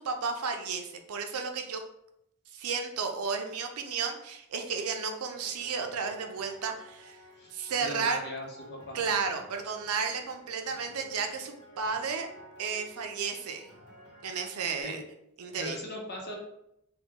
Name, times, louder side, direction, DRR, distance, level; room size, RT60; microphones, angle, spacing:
voice 1, 0.0-1.8 2.5-7.2 7.5-8.2 8.9-12.3 12.6-13.7 14.2-15.0 15.4-15.8, right 5 dB, 90° right, 5 dB, 0.5 m, -33 dB
sound 1, 5.3-14.8, equal, 80° left, 0.9 m, -53 dB
voice 2, 7.8-9.0 14.8-15.0 15.5-16.3, left 1 dB, 50° left, -1 dB, 0.8 m, -39 dB
2.9 x 2.3 x 3.5 m, 0.78 s
head